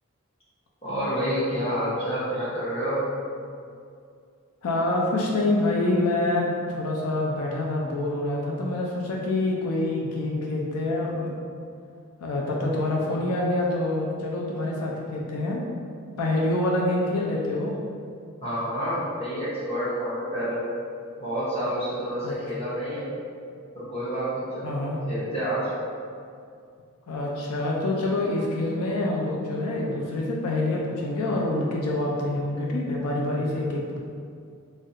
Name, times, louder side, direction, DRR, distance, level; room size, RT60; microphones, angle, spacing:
voice 1, 0.8-3.1 18.4-20.6 21.2-23.1 23.7-24.7 25.0-25.7, equal, 25° left, -9 dB, 0.8 m, -28 dB
voice 2, 4.6-11.3 12.2-15.6 16.2-17.8 22.2-22.3 24.6-25.0 27.1-34.0, left 2 dB, 85° left, -2 dB, 0.4 m, -26 dB
3.1 x 2.3 x 2.8 m, 2.3 s
head